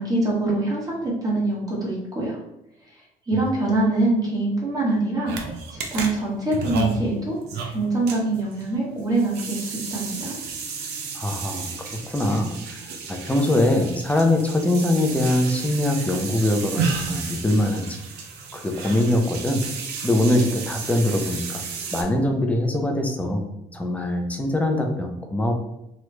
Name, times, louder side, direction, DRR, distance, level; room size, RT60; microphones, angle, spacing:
voice 1, 0.0-2.4 2.9-5.3 5.7-7.4 7.6-10.3, right 2 dB, 20° right, -4 dB, 1.3 m, -24 dB
sound 1, 5.3-22.0, right 5 dB, 85° right, 0.6 m, -32 dB
voice 2, 11.1-11.7 12.1-12.8 13.1-17.9 18.5-19.6 20.0-21.6 21.9-23.4 23.7-25.5, left 1 dB, 10° left, 2 dB, 0.5 m, -22 dB
3.1 x 2.4 x 3.2 m, 0.86 s
cardioid pair, 110°, 17 cm